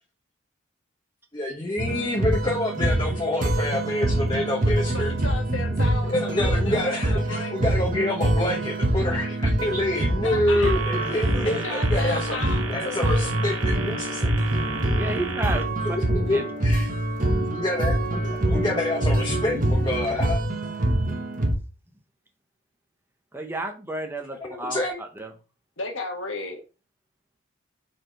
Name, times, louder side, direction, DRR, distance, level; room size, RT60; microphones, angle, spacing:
voice 1, 1.3-5.1 6.0-12.4 12.7-14.3 15.8-16.9 17.5-20.4 24.4-25.0, left 1 dB, 20° left, 0.9 m, -27 dB
sound 1, 1.8-21.5, right 1 dB, 40° right, 1.0 m, -25 dB
voice 2, 4.9-7.5 10.0-10.7 11.4-13.3 25.8-26.6, left 3 dB, 75° left, 1.5 m, -34 dB
voice 3, 10.6-11.2 15.0-16.0 16.3-16.5 23.3-25.3, right 2 dB, 10° right, 0.7 m, -32 dB
sound 2, 10.6-15.6, right 5 dB, 75° right, 1.2 m, -35 dB
4.9 x 4.3 x 4.4 m
head